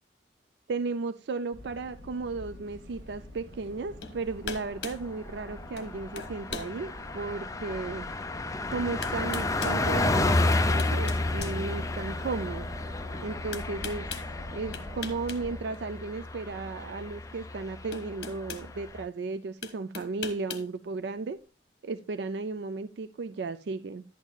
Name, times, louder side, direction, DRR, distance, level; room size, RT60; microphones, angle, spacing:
voice 1, 0.7-8.1 8.7-12.7 13.2-14.1 14.5-21.4 21.8-24.0, right 4 dB, 65° right, 0.4 m, -35 dB
sound 1, 1.5-15.6, equal, 90° right, 1.5 m, -46 dB
Car passing by, 3.4-4.0 4.4-4.5 4.8-19.0, left 2 dB, 20° left, 0.5 m, -31 dB
sound 2, 4.0-4.2 4.4-5.0 5.8-5.9 6.2-6.7 7.3-7.4 8.5-8.6 9.0-9.8 10.5-12.2 13.5-14.3 14.7-15.4 15.7-15.9 17.3-17.4 17.9-18.7 19.6-20.7, left 5 dB, 65° left, 1.2 m, -39 dB
11.5 x 9.0 x 2.3 m
head